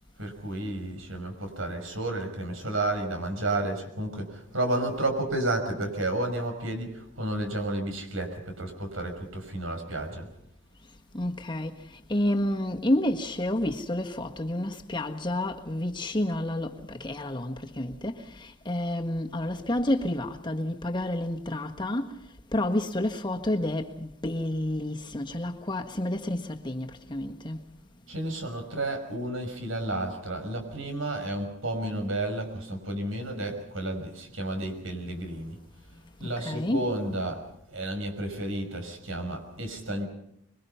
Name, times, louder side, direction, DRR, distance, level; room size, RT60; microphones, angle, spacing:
voice 1, 0.2-10.3 28.1-35.6 36.2-37.4 37.7-40.1, right 1 dB, 75° right, 5.9 m, -31 dB
voice 2, 11.1-27.7 36.2-37.0, left 1 dB, 25° left, 1.5 m, -30 dB
26.0 x 22.5 x 5.7 m
head